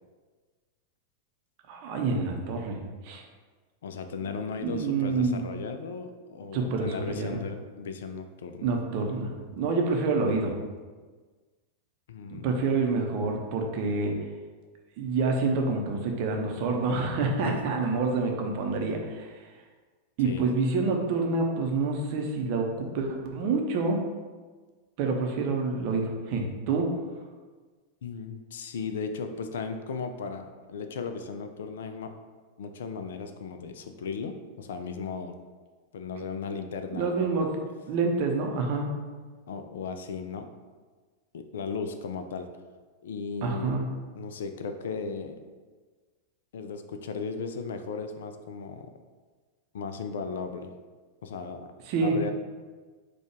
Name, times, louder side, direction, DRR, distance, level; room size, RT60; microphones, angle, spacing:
voice 1, 1.7-3.2 4.6-5.4 6.5-7.4 8.6-10.5 12.3-14.2 15.0-19.3 20.2-24.0 25.0-26.9 36.9-37.6 37.9-38.9 43.4-43.9 51.9-52.3, right 3 dB, 45° right, 2 dB, 0.6 m, -27 dB
voice 2, 3.8-8.7 12.1-12.5 17.4-17.6 20.2-20.5 28.0-32.1 32.6-35.4 35.9-37.5 39.5-40.5 41.3-42.5 43.0-43.8 44.1-45.4 46.5-48.9 49.7-50.7 51.2-51.7 52.0-52.3, left 5 dB, 60° left, 7 dB, 0.3 m, -36 dB
4.4 x 2.3 x 4.5 m, 1.4 s
figure-of-eight pair, 90°, 0 cm